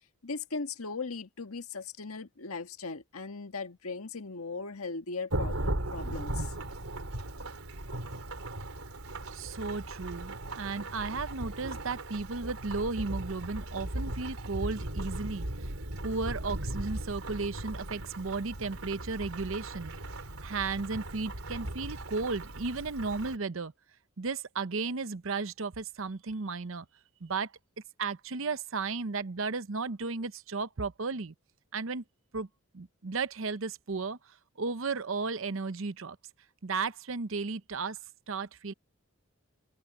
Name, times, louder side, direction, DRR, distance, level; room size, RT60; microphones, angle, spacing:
voice 1, 0.2-6.5, left 4 dB, 85° left, 1.6 m, -38 dB
Thunderstorm / Rain, 5.3-23.4, right 1 dB, 80° right, 3.3 m, -37 dB
voice 2, 9.3-15.7 16.0-19.9 20.4-23.7 24.2-26.9 27.2-27.5 28.0-31.3 31.7-32.0 32.3-32.5 32.7-34.2 34.6-36.2 36.6-38.0 38.3-38.7, right 4 dB, 65° right, 0.8 m, -34 dB
head